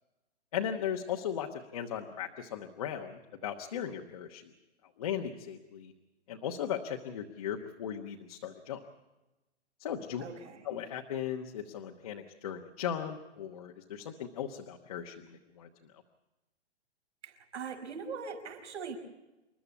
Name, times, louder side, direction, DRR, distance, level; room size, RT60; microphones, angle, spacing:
voice 1, 0.5-4.4 5.0-5.9 6.3-8.8 9.8-10.2 10.6-15.7, left 9 dB, 30° left, 2 dB, 1.1 m, -37 dB
voice 2, 10.2-10.6 17.2-19.0, right 5 dB, 75° right, 4 dB, 5.5 m, -41 dB
28.0 x 12.5 x 8.3 m, 1.1 s
hypercardioid pair, 175°, 35 cm